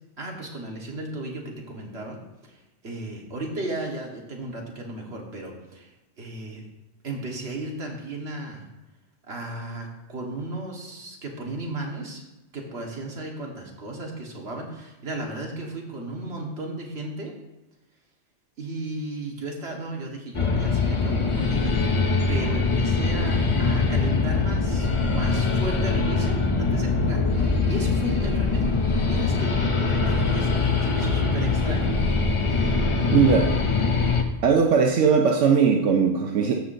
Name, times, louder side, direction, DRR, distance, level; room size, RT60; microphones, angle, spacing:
voice 1, 0.2-2.2 2.4-5.9 6.2-6.6 7.0-8.7 9.3-12.2 12.5-17.3 18.6-28.7 29.1-32.0 32.4-32.9, right 2 dB, 60° right, 0 dB, 1.8 m, -35 dB
sound 1, 20.3-34.2, left 4 dB, 35° left, 0.5 m, -23 dB
voice 2, 33.1-33.5 34.4-36.5, right 6 dB, 80° right, 3 dB, 1.0 m, -19 dB
14.0 x 5.8 x 2.6 m, 1.0 s
omnidirectional pair, 1.3 m